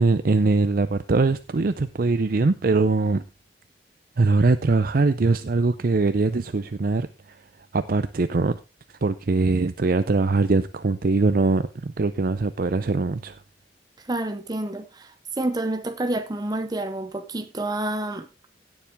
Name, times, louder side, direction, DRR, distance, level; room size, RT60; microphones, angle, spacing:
voice 1, 0.0-3.2 4.2-7.4 7.7-8.6 9.0-13.4, right 3 dB, 55° right, 0.5 m, -22 dB
voice 2, 14.0-18.3, right 2 dB, 25° right, 0.7 m, -29 dB
16.5 x 7.2 x 3.5 m
head